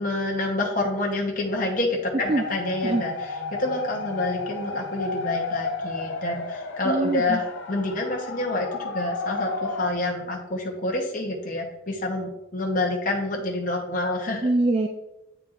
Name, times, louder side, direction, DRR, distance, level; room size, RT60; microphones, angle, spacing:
voice 1, 0.0-14.5, left 2 dB, 40° left, 0 dB, 0.9 m, -28 dB
sound 1, 2.2-9.9, left 3 dB, 65° left, 0.6 m, -33 dB
voice 2, 6.8-7.4 14.4-14.9, right 2 dB, 25° right, 3 dB, 0.3 m, -23 dB
8.8 x 4.5 x 2.5 m, 0.88 s
head